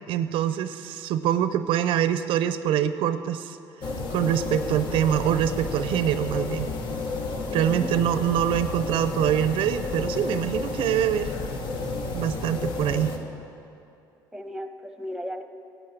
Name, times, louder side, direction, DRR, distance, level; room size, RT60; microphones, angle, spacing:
voice 1, 0.1-3.6 4.1-6.7 7.5-11.3 12.1-13.1, right 10 dB, 70° right, 12 dB, 0.6 m, -24 dB
sound 1, 3.8-13.2, left 3 dB, 60° left, 1.4 m, -31 dB
voice 2, 7.5-7.9 14.3-15.4, equal, 5° right, 7 dB, 1.0 m, -35 dB
11.5 x 8.2 x 8.0 m, 2.6 s
supercardioid pair, 80°, 9 cm